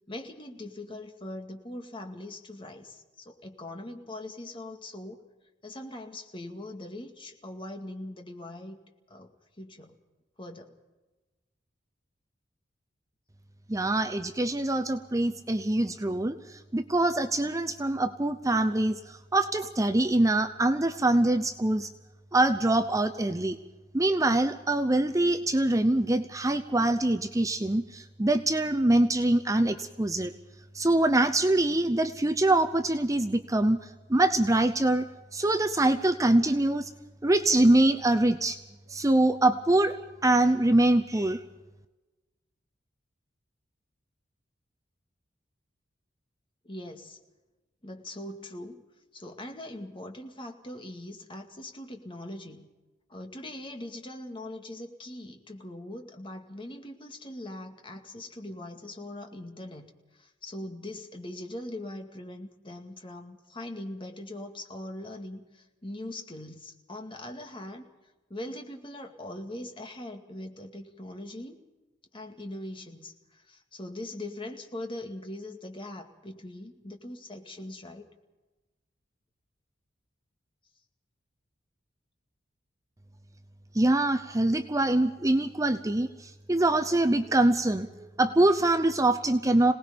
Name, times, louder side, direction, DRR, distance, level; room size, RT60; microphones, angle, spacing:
voice 1, 0.1-5.2 5.6-8.8 9.1-9.9 10.4-10.7 46.6-47.2 47.8-48.8 49.1-52.7 53.1-67.9 68.3-71.6 72.1-78.1, left 1 dB, 30° left, 4 dB, 2.2 m, -41 dB
voice 2, 13.7-16.4 16.7-21.9 22.3-23.6 23.9-30.3 30.7-33.8 34.1-36.9 37.2-38.6 38.9-40.0 40.2-41.4 83.7-89.7, right 2 dB, 15° right, 7 dB, 0.7 m, -24 dB
27.0 x 19.0 x 5.2 m, 1.1 s
head